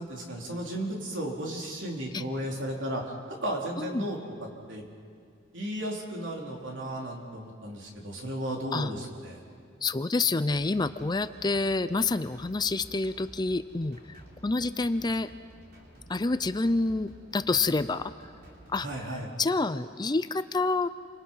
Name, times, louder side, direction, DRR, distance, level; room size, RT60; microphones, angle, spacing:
voice 1, 0.0-4.8 5.5-9.4 18.8-19.3, right 1 dB, 70° right, 0 dB, 3.8 m, -34 dB
voice 2, 9.8-15.3 16.1-18.1 18.7-18.9 19.4-20.9, left 3 dB, 20° left, 13 dB, 0.5 m, -28 dB
sound 1, 10.5-19.1, right 1 dB, 55° right, 3.8 m, -52 dB
28.5 x 26.0 x 5.7 m, 2.4 s
head